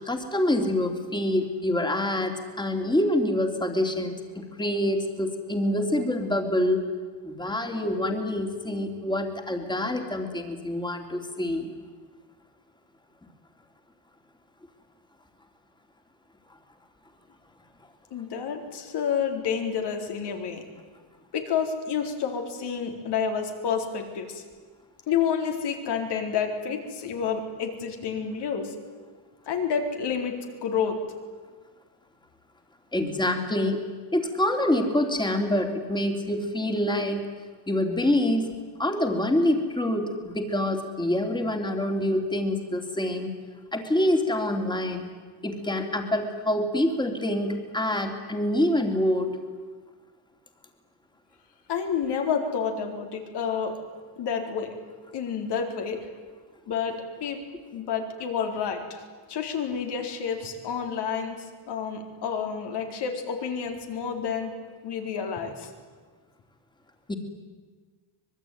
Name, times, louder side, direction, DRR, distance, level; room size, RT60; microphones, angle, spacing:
voice 1, 0.0-6.8 7.2-11.7 32.9-33.8 34.1-37.3 37.7-43.3 43.7-45.1 45.4-49.3 67.1-67.2, left 1 dB, 10° left, 4 dB, 3.0 m, -26 dB
voice 2, 18.1-20.6 21.3-24.4 25.1-28.7 29.5-31.0 51.7-53.8 54.2-54.7 55.1-56.0 56.7-57.4 57.7-59.0 59.3-64.5 64.8-65.7, left 7 dB, 60° left, 4 dB, 4.2 m, -29 dB
24.5 x 21.5 x 9.4 m, 1.5 s
cardioid pair, 145°, 45 cm